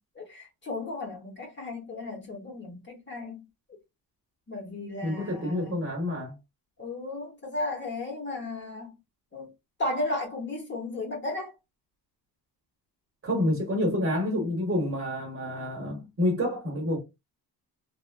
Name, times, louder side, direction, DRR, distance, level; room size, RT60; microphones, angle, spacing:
voice 1, 0.1-3.4 4.5-5.8 6.8-8.9 9.3-9.5 9.8-11.5, left 2 dB, 30° left, 0.9 m, -34 dB
voice 2, 5.0-6.3 13.2-17.0, left 1 dB, 35° right, 0.9 m, -28 dB
3.0 x 2.3 x 2.2 m
cardioid pair, 165°, 39 cm